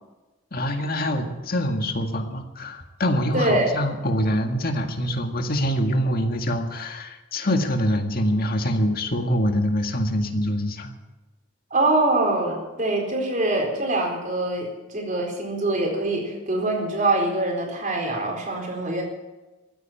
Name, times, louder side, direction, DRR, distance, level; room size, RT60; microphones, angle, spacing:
voice 1, 0.5-10.9, equal, 50° left, 4 dB, 1.9 m, -24 dB
voice 2, 3.3-3.7 11.7-19.0, right 2 dB, 40° right, 0 dB, 4.3 m, -24 dB
15.0 x 9.5 x 8.9 m, 1.1 s
head